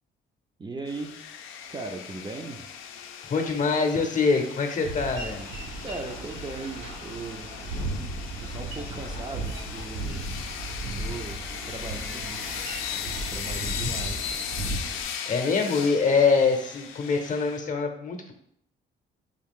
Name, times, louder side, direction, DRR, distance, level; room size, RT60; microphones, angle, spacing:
voice 1, 0.6-1.2 1.7-2.7 5.8-7.5 8.4-10.3 11.0-14.2, right 3 dB, 20° right, 3 dB, 0.4 m, -38 dB
sound 1, 0.9-17.6, left 8 dB, 85° left, 0.4 m, -38 dB
voice 2, 3.3-5.5 15.3-18.3, left 4 dB, 40° left, 5 dB, 0.7 m, -24 dB
Boat Water vehicle, 4.8-15.0, right 2 dB, 80° right, 1.0 m, -35 dB
3.6 x 2.4 x 3.6 m, 0.69 s
cardioid pair, 90°, 20 cm